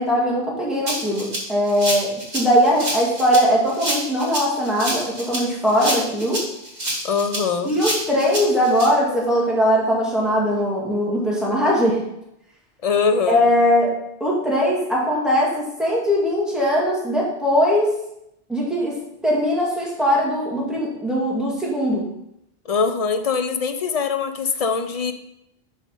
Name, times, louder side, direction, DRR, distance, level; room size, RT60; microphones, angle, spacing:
voice 1, 0.0-6.5 7.6-12.0 13.3-13.9 14.2-17.9 18.5-19.0 19.2-22.1, equal, ahead, -5 dB, 2.2 m, -20 dB
Rattle (instrument), 0.9-8.9, equal, 45° right, 1.8 m, -28 dB
voice 2, 7.0-7.8 12.8-13.5 22.7-25.1, left 5 dB, 45° left, 8 dB, 0.6 m, -22 dB
6.4 x 5.3 x 5.4 m, 0.81 s
omnidirectional pair, 1.0 m